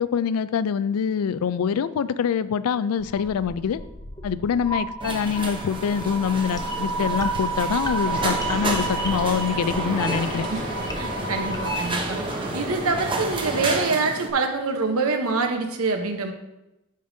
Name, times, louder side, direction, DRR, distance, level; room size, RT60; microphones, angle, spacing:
voice 1, 0.0-3.8 4.2-10.5, left 7 dB, 85° left, 16 dB, 0.3 m, -25 dB
sound 1, 3.0-11.9, right 2 dB, 15° left, 0.5 m, -31 dB
sound 2, 5.0-14.3, right 2 dB, 25° right, 0.8 m, -32 dB
sound 3, 8.0-13.8, right 1 dB, 55° right, 1.9 m, -32 dB
voice 2, 11.0-12.2 12.5-16.3, right 3 dB, 80° right, 4 dB, 0.9 m, -25 dB
10.0 x 5.2 x 2.7 m, 0.94 s
head